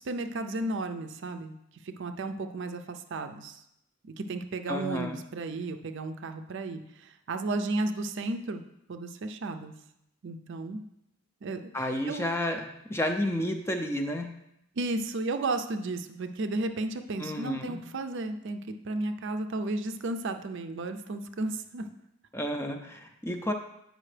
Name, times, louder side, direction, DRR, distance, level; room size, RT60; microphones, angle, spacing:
voice 1, 0.0-1.5 1.8-3.6 4.0-8.6 8.9-9.7 10.2-10.8 11.4-12.4 14.8-18.6 18.8-21.8, right 2 dB, 55° right, 8 dB, 0.5 m, -33 dB
voice 2, 4.7-5.2 11.7-14.3 17.2-17.8 22.3-23.5, left 1 dB, 10° left, 5 dB, 0.4 m, -31 dB
8.6 x 5.1 x 3.3 m, 0.80 s
head